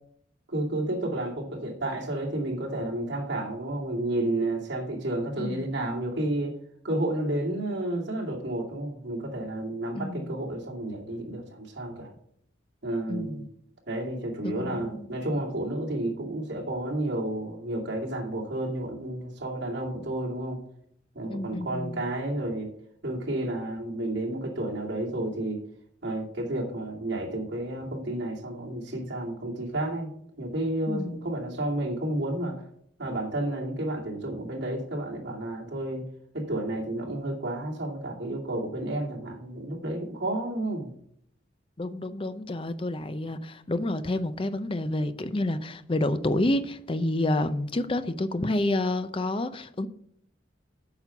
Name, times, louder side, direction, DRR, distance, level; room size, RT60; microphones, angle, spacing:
voice 1, 0.5-6.5 6.8-12.1 12.8-13.4 13.9-20.6 21.1-22.7 23.0-25.6 26.0-30.1 30.4-32.6 33.0-36.1 36.3-40.9, right 1 dB, 65° right, 2.5 m, -31 dB
voice 2, 9.9-10.3 13.1-13.5 14.4-15.1 21.3-22.0 30.9-31.2 41.8-49.9, left 1 dB, 30° left, 0.5 m, -29 dB
8.9 x 5.7 x 5.8 m
head